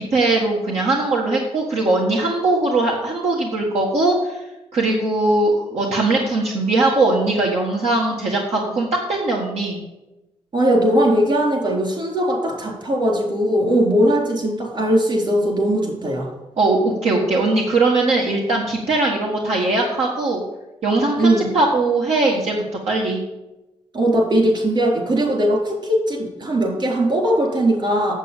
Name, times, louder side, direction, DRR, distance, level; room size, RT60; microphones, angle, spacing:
voice 1, 0.0-4.5 4.7-9.8 16.6-20.4 20.8-23.2, right 2 dB, 75° right, -2 dB, 1.6 m, -20 dB
voice 2, 10.5-16.3 21.2-21.5 23.9-28.1, right 1 dB, 50° right, 0 dB, 4.1 m, -19 dB
8.2 x 7.8 x 7.2 m, 1.0 s
cardioid pair, 85°, 11 cm